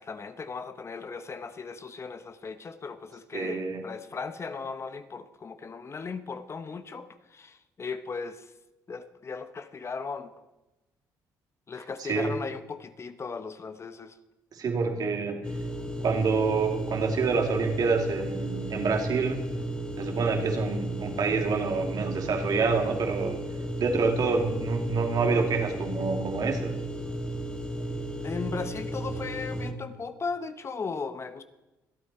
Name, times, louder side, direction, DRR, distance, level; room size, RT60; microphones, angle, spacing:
voice 1, 0.0-8.5 8.9-10.3 11.7-14.2 28.2-31.4, left 4 dB, 35° left, 1.0 m, -37 dB
voice 2, 3.3-3.8 12.0-12.3 14.6-15.4 16.0-19.4 20.0-23.4 23.8-26.7, right 4 dB, 55° right, 2.6 m, -27 dB
sound 1, 15.4-29.7, right 1 dB, 10° left, 1.6 m, -34 dB
25.5 x 8.6 x 4.3 m
supercardioid pair, 80°, 8 cm